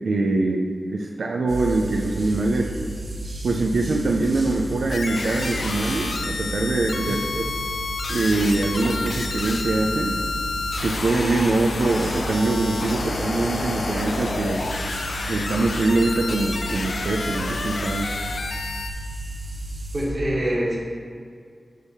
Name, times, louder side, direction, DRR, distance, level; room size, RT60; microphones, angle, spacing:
voice 1, 0.0-2.7 3.4-7.5 8.1-10.2 10.8-14.6 15.3-18.1, right 2 dB, 85° right, 0 dB, 0.4 m, -23 dB
sound 1, 1.5-20.1, right 1 dB, 60° right, 1.5 m, -33 dB
sound 2, 4.9-18.9, left 3 dB, 75° left, 0.4 m, -30 dB
voice 2, 19.9-20.8, equal, 35° right, -5 dB, 1.4 m, -24 dB
6.3 x 3.5 x 5.6 m, 2.1 s
wide cardioid pair, 110°, 0 cm